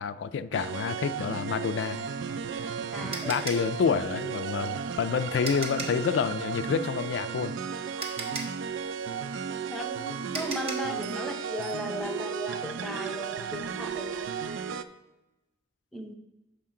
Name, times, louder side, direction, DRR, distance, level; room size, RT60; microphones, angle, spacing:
voice 1, 0.0-2.1 3.0-7.6 8.0-8.1, left 6 dB, 75° left, 13 dB, 0.3 m, -29 dB
sound 1, 0.5-14.8, right 6 dB, 90° right, 0.4 m, -34 dB
sound 2, 2.2-6.1 7.5-7.6 8.0-11.0, right 3 dB, 35° right, 0.9 m, -38 dB
voice 2, 2.9-3.4 8.3-8.6 9.7-14.3 15.9-16.1, equal, ahead, 2 dB, 0.6 m, -37 dB
11.5 x 5.1 x 3.8 m, 1.0 s
head